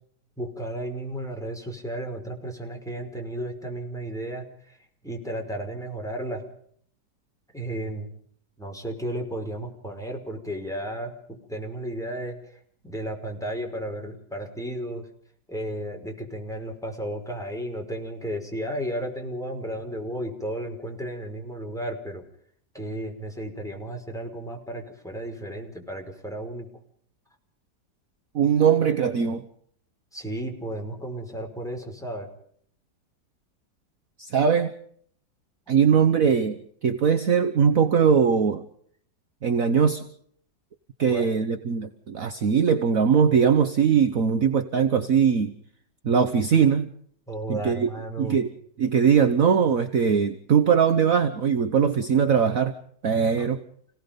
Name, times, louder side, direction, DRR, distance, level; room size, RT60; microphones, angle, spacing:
voice 1, 0.4-4.8 5.0-6.4 7.5-8.1 8.6-12.4 12.8-15.1 15.5-22.2 22.7-26.7 30.1-32.3 41.1-41.3 47.3-48.4 53.4-53.5, right 1 dB, ahead, 1 dB, 5.3 m, -33 dB
voice 2, 28.3-29.4 34.2-34.7 35.7-38.6 39.4-40.1 41.0-45.5 46.0-46.9 47.5-47.9 48.2-48.5 48.8-52.7 53.0-53.6, right 7 dB, 55° right, 9 dB, 1.4 m, -21 dB
30.0 x 18.0 x 5.3 m, 0.63 s
omnidirectional pair, 1.9 m